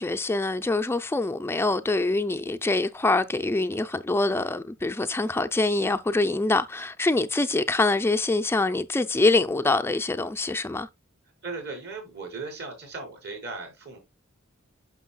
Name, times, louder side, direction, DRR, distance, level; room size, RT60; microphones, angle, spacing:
voice 1, 0.0-10.9, left 2 dB, 10° left, 0.4 m, -25 dB
voice 2, 11.4-14.0, right 3 dB, 55° right, 4.3 m, -37 dB
9.4 x 6.5 x 2.2 m
head